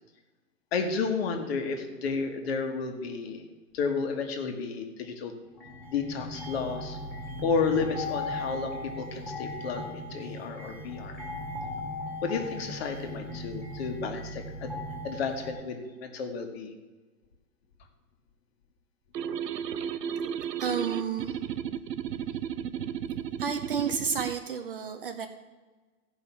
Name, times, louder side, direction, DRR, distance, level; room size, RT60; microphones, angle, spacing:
voice 1, 0.7-3.4 3.7-5.3 5.9-7.0 7.4-11.2 12.2-14.8 15.0-16.7, left 5 dB, 40° left, 5 dB, 1.6 m, -32 dB
sound 1, 5.6-15.5, left 1 dB, ahead, 2.0 m, -38 dB
sound 2, 19.1-24.4, right 8 dB, 85° right, 0.8 m, -34 dB
voice 2, 20.6-21.4 23.4-25.3, right 7 dB, 35° right, 7 dB, 0.6 m, -31 dB
15.0 x 5.5 x 5.9 m, 1.3 s
hypercardioid pair, 155°, 48 cm